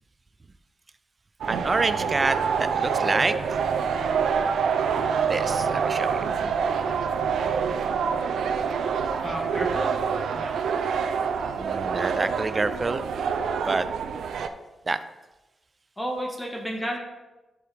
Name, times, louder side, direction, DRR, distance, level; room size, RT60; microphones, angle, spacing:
sound 1, 1.4-14.5, right 6 dB, 90° right, 0.5 m, -26 dB
voice 1, 1.5-3.4 5.3-6.3 11.6-13.1 13.6-13.9 14.9-15.0, right 3 dB, 30° right, 12 dB, 0.4 m, -27 dB
voice 2, 9.2-10.0 10.3-10.6 16.0-17.0, equal, 10° left, 0 dB, 1.4 m, -32 dB
11.5 x 4.7 x 3.5 m, 1.1 s
cardioid pair, 105°, 0 cm